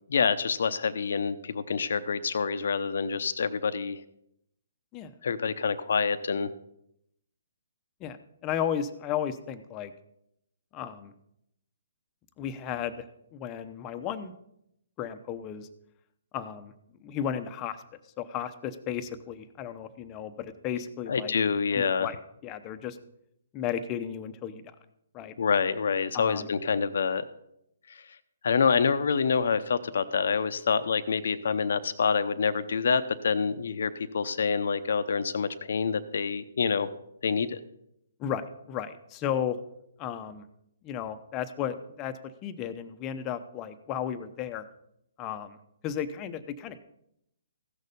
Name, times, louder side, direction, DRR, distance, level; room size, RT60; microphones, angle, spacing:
voice 1, 0.1-4.0 5.2-6.5 21.1-22.1 25.4-27.2 27.9-28.0 28.4-36.9 37.2-37.6, left 5 dB, 65° left, 11 dB, 0.7 m, -27 dB
voice 2, 8.4-9.9 10.7-11.1 12.4-13.0 13.3-14.3 15.0-15.7 16.3-16.7 17.0-17.8 18.2-21.3 21.7-23.0 23.5-24.6 25.1-25.3 26.1-26.5 38.2-39.6 40.0-40.4 40.8-42.1 42.4-44.7 45.2-45.6 45.8-46.8, left 9 dB, 25° left, 10 dB, 0.8 m, -34 dB
15.5 x 6.6 x 5.3 m, 0.76 s
hypercardioid pair, 145°, 0 cm